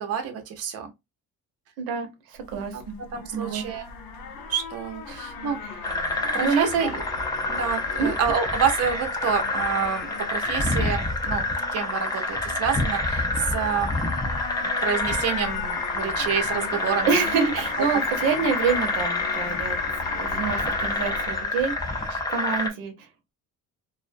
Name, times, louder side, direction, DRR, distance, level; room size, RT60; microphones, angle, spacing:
voice 1, 0.0-0.9 2.5-2.8 3.1-3.9 4.5-5.6 6.3-6.9 7.5-11.4 11.7-13.9 14.6-17.2 17.9-18.0, right 7 dB, 45° right, 0.6 m, -28 dB
voice 2, 1.8-3.0 3.3-3.6 5.1-5.2 5.6-5.8 6.2-7.0 8.0-8.1 17.0-19.8 20.1-23.1, right 5 dB, 85° right, 0.8 m, -27 dB
sound 1, 2.4-21.4, left 6 dB, 80° left, 0.8 m, -36 dB
sound 2, 5.8-22.7, left 2 dB, 10° left, 0.4 m, -28 dB
2.4 x 2.1 x 2.5 m
cardioid pair, 110°, 35 cm